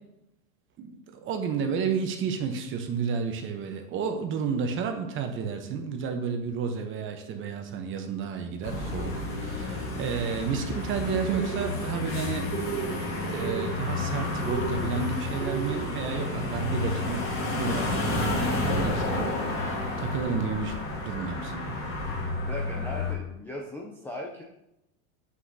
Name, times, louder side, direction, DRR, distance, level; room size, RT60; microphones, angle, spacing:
voice 1, 0.8-12.5 13.3-21.6, right 6 dB, 30° right, 5 dB, 0.8 m, -31 dB
sound 1, 8.6-23.1, left 2 dB, 35° left, 1.5 m, -31 dB
sound 2, 11.2-11.7 12.5-13.0 13.2-13.7 14.4-14.9 15.4-15.9, right 9 dB, 80° right, 0.8 m, -34 dB
voice 2, 22.4-24.4, left 1 dB, 5° left, -2 dB, 0.4 m, -38 dB
7.8 x 6.0 x 2.7 m, 0.85 s
supercardioid pair, 145°, 40 cm